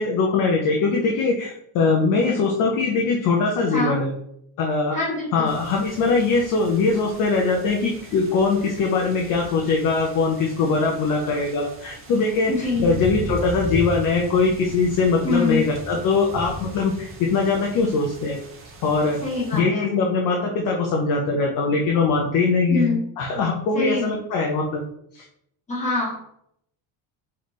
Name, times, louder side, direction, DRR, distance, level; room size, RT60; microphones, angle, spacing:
voice 1, 0.0-4.1 4.6-5.0 5.3-18.4 18.8-19.2 19.5-22.9 23.2-24.8 25.1-25.2, left 4 dB, 40° left, 0 dB, 0.6 m, -21 dB
voice 2, 4.9-5.5 12.5-12.9 15.2-15.6 19.2-19.9 22.7-23.0 23.7-24.2 25.7-26.2, left 2 dB, 15° left, -6 dB, 1.3 m, -24 dB
sound 1, 5.5-19.6, right 2 dB, 25° right, 0.5 m, -37 dB
4.1 x 3.2 x 3.1 m, 0.70 s
cardioid pair, 170°, 50 cm